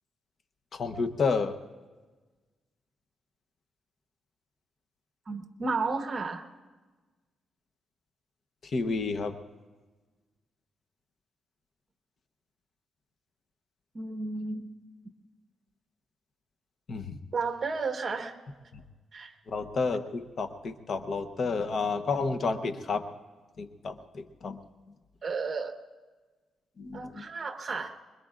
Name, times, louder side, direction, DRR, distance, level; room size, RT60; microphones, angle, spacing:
voice 1, 0.7-1.6 8.6-9.4 16.9-17.2 18.7-18.8 19.5-23.0 23.6-24.6 26.8-27.3, left 4 dB, 50° left, 8 dB, 0.9 m, -31 dB
voice 2, 5.3-6.4 13.9-14.7 17.3-18.3 19.1-19.3 25.2-25.7 26.9-27.9, right 4 dB, 35° right, 5 dB, 1.3 m, -32 dB
25.0 x 22.5 x 2.5 m, 1.3 s
cardioid pair, 125°, 0 cm